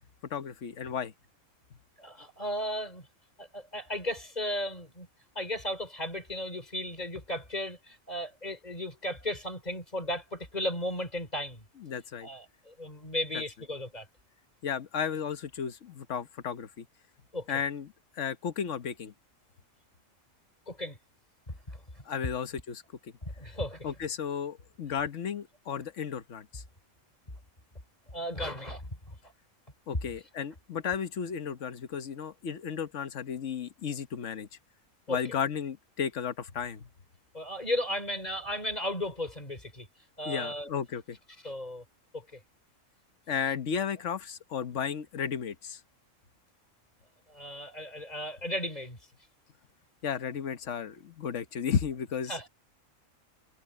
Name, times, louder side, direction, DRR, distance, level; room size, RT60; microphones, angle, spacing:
voice 1, 0.3-1.1 11.8-12.3 13.3-13.4 14.6-16.8 17.5-17.9 18.2-19.1 22.1-22.8 23.8-26.6 29.9-34.5 35.1-36.9 40.2-41.2 43.3-45.8 50.0-52.4, left 7 dB, 65° left, 1.4 m, -34 dB
voice 2, 2.0-3.0 3.4-5.1 5.4-11.6 12.2-14.1 17.3-17.5 20.7-21.0 21.5-21.8 23.2-23.9 28.1-29.2 35.1-35.2 37.3-39.9 40.2-40.7 41.4-41.8 42.1-42.4 47.3-49.0 52.3-52.5, left 1 dB, 30° left, 3.5 m, -35 dB
omnidirectional pair, 1.4 m